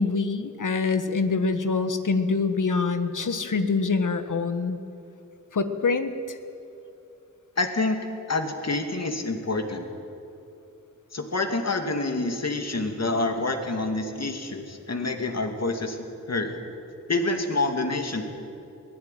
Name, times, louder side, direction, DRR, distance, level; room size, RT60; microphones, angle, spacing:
voice 1, 0.0-4.8 5.5-6.4, left 4 dB, 70° left, 9 dB, 1.4 m, -25 dB
voice 2, 7.6-8.0 8.3-9.9 11.1-16.6 17.1-18.2, left 2 dB, 50° left, 5 dB, 2.5 m, -27 dB
22.0 x 16.0 x 9.3 m, 2.9 s
wide cardioid pair, 70°, 32 cm